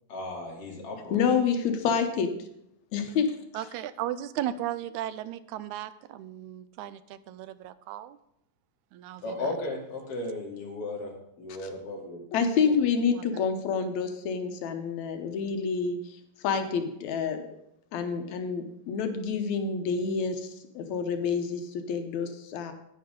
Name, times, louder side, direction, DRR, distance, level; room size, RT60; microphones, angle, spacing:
voice 1, 0.1-1.2 9.2-11.1 11.4-12.2 12.6-12.7, left 2 dB, 55° left, -1 dB, 2.9 m, -35 dB
voice 2, 1.1-2.3 2.9-3.3 12.3-16.0 16.4-17.4 17.9-20.5 20.8-22.7, left 6 dB, 80° left, 7 dB, 2.2 m, -28 dB
voice 3, 3.5-8.2 8.9-9.5 13.1-13.5, right 12 dB, 90° right, 15 dB, 2.0 m, -36 dB
10.0 x 9.6 x 3.7 m, 0.79 s
omnidirectional pair, 3.3 m